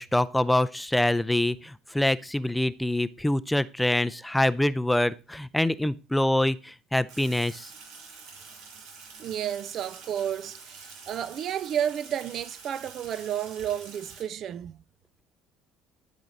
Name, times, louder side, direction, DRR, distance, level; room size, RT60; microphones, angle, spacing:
voice 1, 0.0-7.7, left 1 dB, 5° left, 0.5 m, -25 dB
Sink (filling or washing), 7.1-14.2, right 4 dB, 80° right, 2.4 m, -47 dB
voice 2, 9.2-14.8, right 9 dB, 55° right, 0.4 m, -31 dB
12.0 x 4.9 x 4.0 m
supercardioid pair, 90°, 0 cm